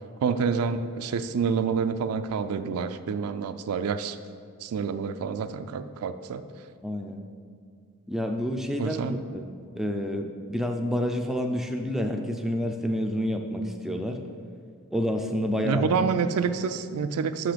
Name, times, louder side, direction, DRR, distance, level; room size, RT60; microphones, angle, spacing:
voice 1, 0.2-4.2 4.6-6.5 8.8-9.2 15.6-17.5, right 6 dB, 75° right, 11 dB, 0.3 m, -28 dB
voice 2, 6.8-7.2 8.1-9.4 9.8-14.2 14.9-15.8, equal, ahead, 3 dB, 0.3 m, -29 dB
5.8 x 5.6 x 5.1 m, 2.2 s
head